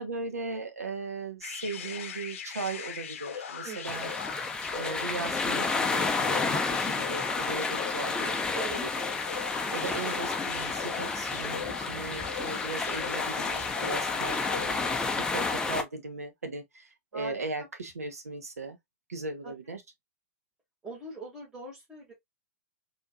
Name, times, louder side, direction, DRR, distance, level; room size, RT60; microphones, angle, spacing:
voice 1, 0.0-4.1 4.7-8.4 8.7-8.8 9.1-9.2 9.7-14.8 15.2-18.8 19.1-19.8, right 3 dB, 75° right, 0.8 m, -37 dB
sound 1, 1.4-15.2, left 7 dB, 55° left, 0.7 m, -40 dB
voice 2, 3.6-4.2 8.6-9.2 14.1-14.9 17.1-17.4 19.4-19.5 20.8-22.1, right 2 dB, 10° right, 1.9 m, -43 dB
sound 2, 3.8-15.8, left 3 dB, 10° left, 0.6 m, -31 dB
4.4 x 2.7 x 2.3 m
figure-of-eight pair, 105°, 8 cm